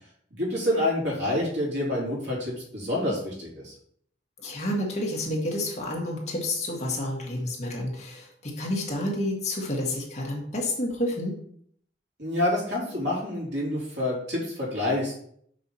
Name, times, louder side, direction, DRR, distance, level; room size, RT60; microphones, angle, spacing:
voice 1, 0.3-3.7 12.2-15.1, left 1 dB, 85° right, -4 dB, 3.4 m, -27 dB
voice 2, 4.4-11.4, left 1 dB, 40° left, -1 dB, 1.9 m, -29 dB
6.1 x 6.0 x 4.3 m, 0.65 s
head